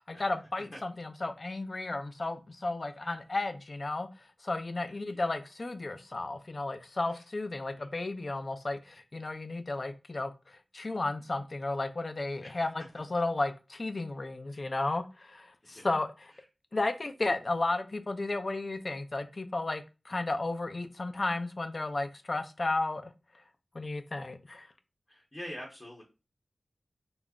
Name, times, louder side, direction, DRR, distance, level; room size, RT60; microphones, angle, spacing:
voice 1, 0.0-4.1 4.4-16.1 16.7-23.1 23.7-24.7, left 2 dB, 55° left, 0.4 m, -33 dB
voice 2, 4.8-5.3 7.1-7.2 7.7-7.9 12.4-12.7 15.6-15.9 16.3-16.5 25.1-26.0, equal, 35° left, 0.8 m, -46 dB
2.3 x 2.0 x 3.5 m
cardioid pair, 45°, 0 cm